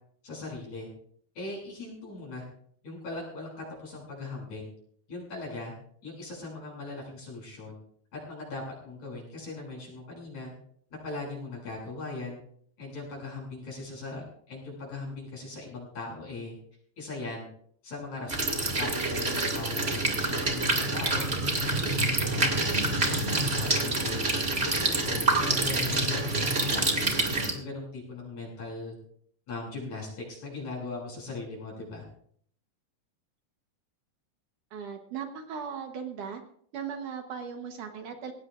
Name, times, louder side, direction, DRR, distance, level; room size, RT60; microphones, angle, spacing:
voice 1, 0.2-0.9 1.4-2.4 2.8-4.7 5.1-5.7 6.0-7.8 8.1-10.5 11.0-12.4 12.8-16.6 17.0-17.5 17.8-21.3 21.6-22.5 22.9-24.3 24.6-27.2 27.5-29.0 29.5-32.0, left 3 dB, 45° left, -1 dB, 7.7 m, -39 dB
sound 1, 18.3-27.5, right 2 dB, 25° right, 1.2 m, -27 dB
voice 2, 34.7-36.4 36.7-38.3, right 7 dB, 65° right, 5 dB, 2.2 m, -37 dB
19.5 x 18.0 x 2.5 m, 0.63 s
omnidirectional pair, 4.7 m